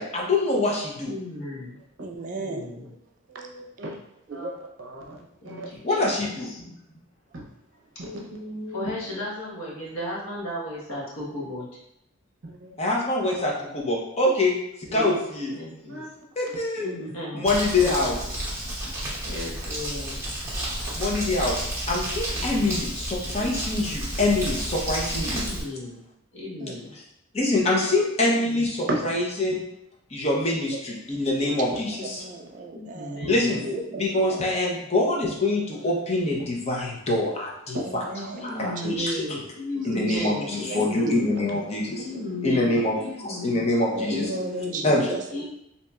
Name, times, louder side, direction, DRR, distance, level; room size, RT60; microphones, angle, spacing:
voice 1, 0.0-1.1 5.8-6.7 12.8-15.5 16.4-16.9 17.3-18.1 20.9-21.6 21.9-25.4 27.3-29.6 30.1-32.2 33.3-33.6 34.0-38.0 38.4-39.2 39.8-42.0 42.4-44.3 44.8-45.1, left 2 dB, 30° left, -2 dB, 0.6 m, -25 dB
voice 2, 1.0-1.8 2.4-2.9 5.4-6.6 8.7-11.7 14.8-15.2 15.5-16.0 16.8-18.4 18.6-18.7 19.2-20.3 22.4-22.7 24.1-24.4 25.3-26.0 26.3-26.9 28.2-28.7 32.7-33.6 38.3-41.3 42.0-43.7 44.0-44.9 45.3-45.4, left 1 dB, 80° left, -5 dB, 1.1 m, -35 dB
voice 3, 2.0-3.0 4.3-4.5 25.3-25.4 26.6-26.8 27.8-27.9 31.9-33.2 33.6-34.7 37.9-38.4 38.7-38.8 40.1-40.8 41.5-41.7 42.1-42.6 43.9-45.4, right 2 dB, 35° right, 3 dB, 0.3 m, -35 dB
voice 4, 3.3-4.0 4.3-4.5 4.8-5.7 7.3-7.4 8.0-9.0 12.4-12.8 15.0-15.1 15.9-16.1 18.8-18.9 23.3-23.5 28.9-29.0 31.7-31.8 33.2-33.3 36.4-36.6 37.7-37.8 41.3-41.4, right 1 dB, 60° right, -1 dB, 0.7 m, -34 dB
Crumpling crinkling, 17.5-25.6, right 1 dB, 15° right, 1.0 m, -31 dB
4.1 x 2.8 x 2.3 m, 0.79 s
head